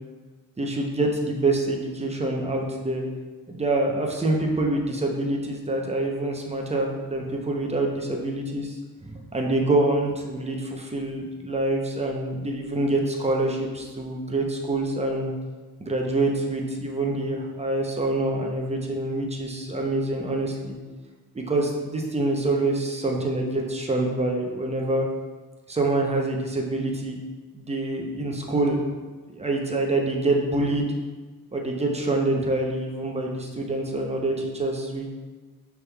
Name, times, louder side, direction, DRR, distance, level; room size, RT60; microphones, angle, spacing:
voice 1, 0.6-3.1 3.5-8.8 9.0-15.3 15.8-20.8 21.3-25.1 25.7-27.2 27.5-28.8 29.3-31.0 31.5-35.1, right 2 dB, 20° right, 0 dB, 0.6 m, -26 dB
5.9 x 3.4 x 2.3 m, 1.3 s
wide cardioid pair, 105°, 35 cm